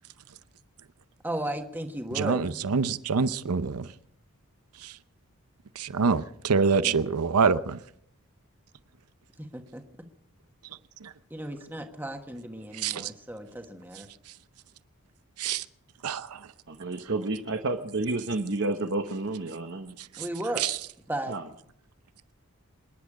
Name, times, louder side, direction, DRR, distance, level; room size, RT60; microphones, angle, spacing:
voice 1, 1.2-2.8 6.8-7.1 9.4-9.8 11.3-14.1 20.2-20.6 21.1-21.4, right 1 dB, 10° right, 4 dB, 1.3 m, -35 dB
voice 2, 2.2-3.8 5.8-7.8 12.8-13.0 15.4-15.6 16.0-16.3 20.6-20.7, right 5 dB, 85° right, 14 dB, 0.7 m, -25 dB
voice 3, 16.7-19.9 21.3-21.4, right 2 dB, 55° right, 5 dB, 1.0 m, -30 dB
27.0 x 10.5 x 4.9 m, 0.73 s
head